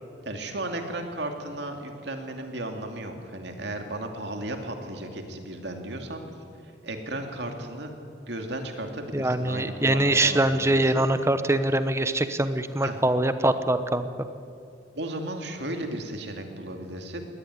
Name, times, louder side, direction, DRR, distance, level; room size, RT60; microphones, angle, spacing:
voice 1, 0.2-6.2 6.8-7.9 8.3-11.1 12.8-13.0 15.0-17.2, right 1 dB, 60° right, 4 dB, 2.6 m, -35 dB
voice 2, 9.1-14.1, right 1 dB, 15° right, 11 dB, 0.9 m, -23 dB
21.5 x 18.0 x 9.6 m, 2.5 s
head